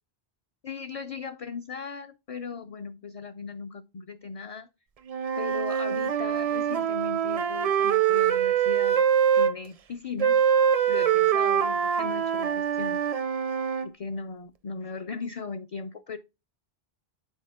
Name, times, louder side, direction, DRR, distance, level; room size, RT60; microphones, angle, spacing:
voice 1, 0.6-4.7 5.4-9.0 9.3-10.4 10.9-13.0 13.8-16.2, left 5 dB, 50° left, 0.4 m, -38 dB
Wind instrument woodwind instrument, 5.1-9.5 10.2-13.9, right 8 dB, 50° right, 0.5 m, -24 dB
8.1 x 4.1 x 3.5 m
omnidirectional pair, 1.0 m